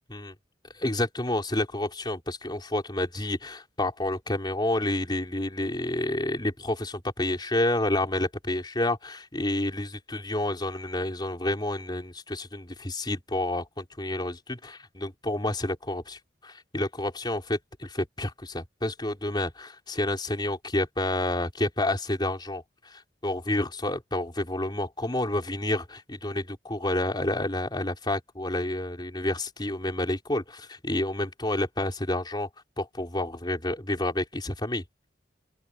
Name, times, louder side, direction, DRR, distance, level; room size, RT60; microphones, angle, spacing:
voice 1, 0.7-32.5 32.8-34.8, left 1 dB, 25° left, 4.1 m, -29 dB
open air
head